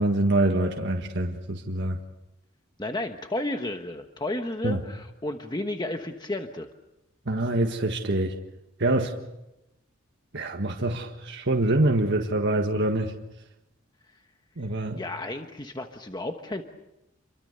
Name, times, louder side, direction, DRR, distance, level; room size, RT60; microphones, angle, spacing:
voice 1, 0.0-2.0 4.6-4.8 7.2-8.3 8.8-9.1 10.3-13.1 14.6-15.0, right 2 dB, 60° right, 1.7 m, -25 dB
voice 2, 2.8-6.7 14.9-16.6, left 1 dB, 20° left, 1.2 m, -32 dB
29.5 x 24.0 x 6.8 m
head